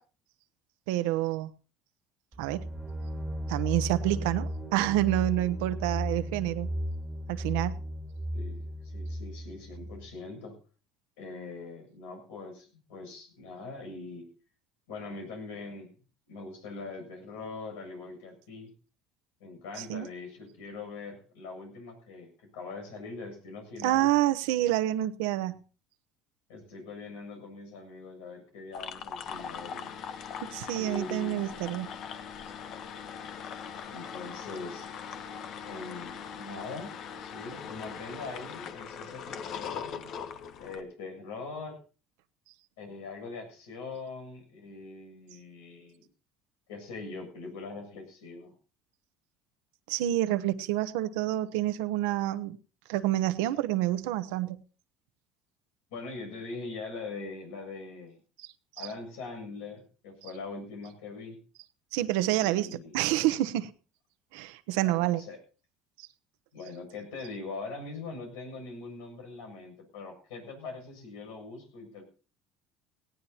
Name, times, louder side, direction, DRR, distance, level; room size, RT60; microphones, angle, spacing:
voice 1, 0.9-1.5 2.4-2.7 3.5-6.7 7.3-7.8 19.8-20.1 23.8-25.6 30.5-31.9 49.9-52.6 52.9-54.6 58.4-58.5 61.9-63.7 64.3-65.2 66.0-66.1, right 15 dB, 85° right, 12 dB, 1.0 m, -28 dB
sound 1, 2.3-10.1, equal, 5° right, 2.1 m, -35 dB
voice 2, 8.3-10.6 11.2-14.3 14.9-15.9 16.3-18.7 19.4-24.1 26.5-30.0 30.7-31.6 32.4-32.7 33.8-34.9 35.6-36.9 37.2-40.1 40.6-41.8 42.8-46.0 46.7-48.5 55.9-58.2 58.8-61.4 62.4-63.0 64.8-65.4 66.5-72.0, left 3 dB, 90° left, 4 dB, 7.4 m, -42 dB
sound 2, 28.7-40.8, left 7 dB, 55° left, 1.4 m, -41 dB
18.0 x 17.5 x 2.9 m, 0.37 s
supercardioid pair, 105°, 0 cm